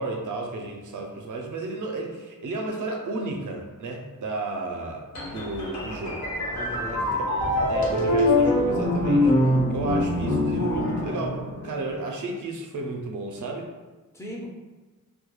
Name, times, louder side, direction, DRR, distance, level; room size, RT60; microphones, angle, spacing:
voice 1, 0.0-6.2 6.9-13.7, right 2 dB, 60° right, 1 dB, 0.5 m, -33 dB
sound 1, 5.2-11.9, left 1 dB, 55° left, 0.7 m, -24 dB
voice 2, 6.5-7.7 14.1-14.5, equal, 10° left, -2 dB, 0.4 m, -39 dB
2.2 x 2.2 x 2.9 m, 1.2 s
wide cardioid pair, 130°, 34 cm